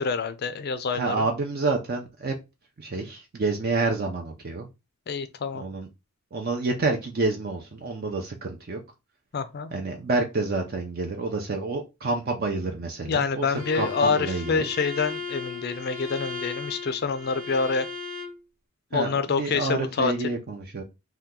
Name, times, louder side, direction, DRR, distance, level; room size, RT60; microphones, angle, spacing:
voice 1, 0.0-1.3 5.1-5.6 9.3-9.7 13.1-17.9 18.9-20.1, left 5 dB, 45° left, 0.4 m, -27 dB
voice 2, 0.9-2.3 2.8-4.7 5.5-5.9 6.3-8.8 9.7-13.5 13.7-14.6 18.9-19.1 19.4-20.8, right 3 dB, 40° right, 0.4 m, -28 dB
Bowed string instrument, 13.5-18.4, left 3 dB, 60° right, 1.1 m, -36 dB
2.9 x 2.2 x 3.6 m
head